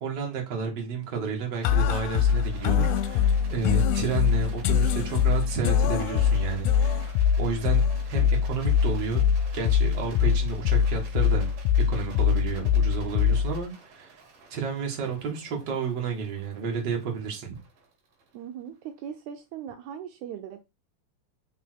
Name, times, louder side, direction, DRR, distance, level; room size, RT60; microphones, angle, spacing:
voice 1, 0.0-7.1 7.4-11.5 11.9-14.2 14.5-17.5, right 6 dB, 45° right, 1.8 m, -31 dB
sound 1, 1.6-13.6, left 7 dB, 80° left, 1.9 m, -23 dB
Rattle, 1.6-18.9, right 4 dB, 60° right, 3.0 m, -51 dB
voice 2, 18.3-20.6, right 9 dB, 80° right, 1.9 m, -39 dB
6.1 x 3.6 x 4.5 m
omnidirectional pair, 3.6 m